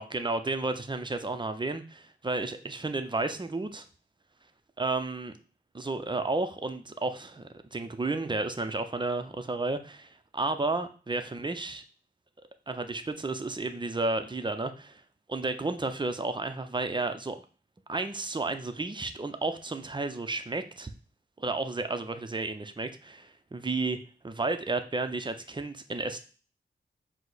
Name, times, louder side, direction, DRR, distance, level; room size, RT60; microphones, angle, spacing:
voice 1, 0.0-3.8 4.8-5.3 5.7-11.8 12.7-15.0 15.3-17.4 17.9-20.9 21.4-24.0 24.2-26.2, right 3 dB, 25° right, 8 dB, 0.6 m, -32 dB
4.7 x 2.1 x 4.0 m, 0.37 s
cardioid pair, 50°, 19 cm